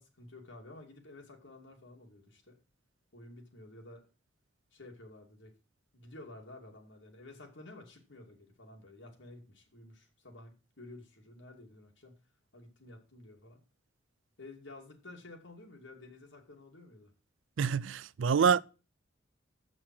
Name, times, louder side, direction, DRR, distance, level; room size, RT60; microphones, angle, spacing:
voice 1, 0.0-2.6 3.1-4.0 4.7-5.5 5.9-12.1 12.5-13.6 14.4-17.1, left 2 dB, 70° left, 2.6 m, -52 dB
voice 2, 17.6-18.6, right 6 dB, 80° right, 0.4 m, -26 dB
7.3 x 6.1 x 7.6 m
head